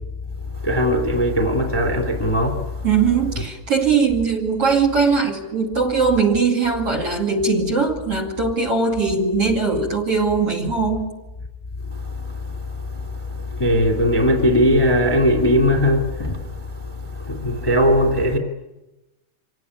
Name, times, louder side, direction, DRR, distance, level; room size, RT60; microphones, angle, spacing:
voice 1, 0.6-2.6 12.9-13.1 13.5-16.4 17.2-18.4, equal, 10° left, 1.8 m, -18 dB
voice 2, 2.8-11.1, right 5 dB, 40° right, 2.8 m, -20 dB
26.0 x 18.0 x 9.8 m
omnidirectional pair, 4.9 m